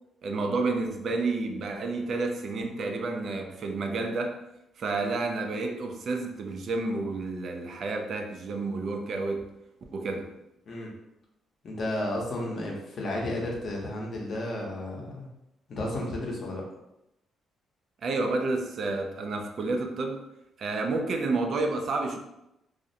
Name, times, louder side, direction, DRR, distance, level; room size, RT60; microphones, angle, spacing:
voice 1, 0.2-4.4 4.8-9.5 9.9-10.3 18.0-20.2 20.6-22.2, right 3 dB, 60° right, 0.3 m, -30 dB
voice 2, 11.6-15.3 15.7-16.6, left 1 dB, 55° left, 0.7 m, -32 dB
2.4 x 2.0 x 2.6 m
cardioid pair, 90°, 0 cm